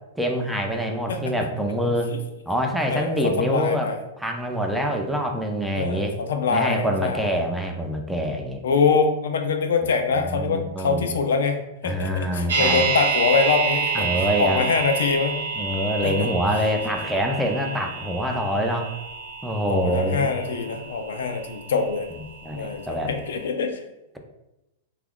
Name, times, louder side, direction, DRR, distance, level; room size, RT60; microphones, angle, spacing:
voice 1, 0.2-2.1 2.5-3.9 4.2-6.2 6.5-8.6 10.1-11.1 11.8-12.8 13.9-14.7 15.6-18.9 19.4-20.3 22.4-23.1, equal, ahead, 2 dB, 0.4 m, -25 dB
voice 2, 2.9-4.0 5.8-7.4 8.6-11.6 11.8-14.1 14.4-15.4 16.0-16.3 19.7-22.1 22.6-22.8 23.1-23.8, left 5 dB, 85° left, 5 dB, 0.4 m, -24 dB
sound 1, 12.5-22.5 22.8-22.9, right 6 dB, 85° right, 0.6 m, -29 dB
2.9 x 2.3 x 3.5 m, 0.94 s
hypercardioid pair, 140°, 0 cm